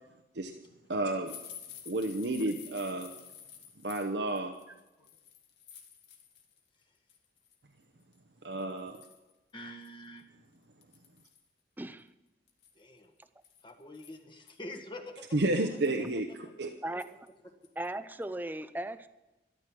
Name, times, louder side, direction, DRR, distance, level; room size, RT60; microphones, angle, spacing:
voice 1, 0.9-1.3 1.9-3.1 3.8-4.5 8.4-8.9 15.3-16.7, right 2 dB, 75° right, 4 dB, 0.9 m, -31 dB
sound 1, 1.3-6.6 7.0-7.6 8.1-8.2 8.6-9.3 9.8-9.9 10.2-10.3 10.8-11.5 12.5-14.5 15.1-15.2 15.5-16.1 17.0-17.3 17.6-17.9 18.2-18.3, left 8 dB, 75° left, 2.2 m, -51 dB
voice 2, 9.5-10.2 12.7-13.1 13.6-15.3 15.7-15.8 16.6-16.7 17.4-17.5, left 1 dB, 25° left, 4 dB, 1.5 m, -46 dB
voice 3, 11.8-12.1 16.8-17.1 17.8-19.1, right 1 dB, 10° right, 12 dB, 0.5 m, -37 dB
13.0 x 12.5 x 6.1 m, 1.0 s
head